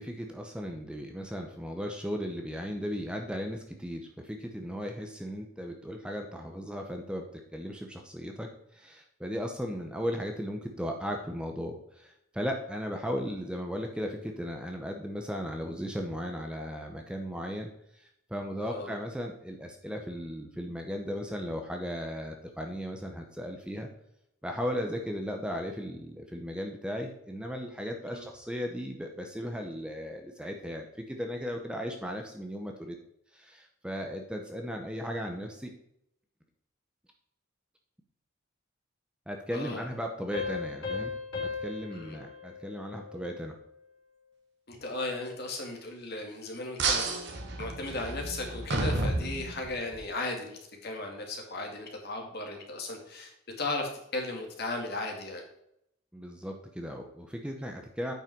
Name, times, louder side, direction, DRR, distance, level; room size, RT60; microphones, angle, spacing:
voice 1, 0.0-23.9 24.4-33.0 33.3-35.7 39.3-41.1 41.4-43.5 56.1-58.1, equal, 5° right, 3 dB, 0.8 m, -36 dB
voice 2, 18.6-18.9 28.1-28.3 39.5-39.9 41.9-42.2 44.7-47.2 47.6-53.3 53.6-55.4, left 2 dB, 50° left, 2 dB, 2.2 m, -36 dB
sound 1, 40.3-43.6, left 5 dB, 75° left, 3.5 m, -37 dB
sound 2, 46.8-50.0, right 2 dB, 60° right, 1.6 m, -31 dB
8.9 x 5.5 x 4.6 m, 0.77 s
head